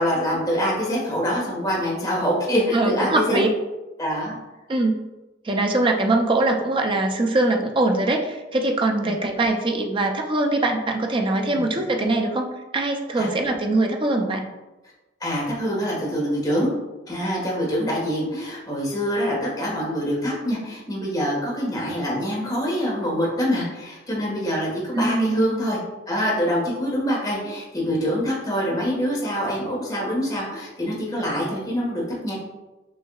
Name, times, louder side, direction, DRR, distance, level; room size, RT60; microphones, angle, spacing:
voice 1, 0.0-3.4 4.0-4.4 9.0-9.1 11.5-11.6 13.2-13.3 15.2-16.7 17.1-25.8 26.1-32.3, equal, 20° left, -5 dB, 1.4 m, -25 dB
voice 2, 2.7-3.5 4.7-5.0 5.4-14.4 24.9-25.4, right 2 dB, 25° right, 3 dB, 0.5 m, -22 dB
6.3 x 2.7 x 2.3 m, 1.1 s
head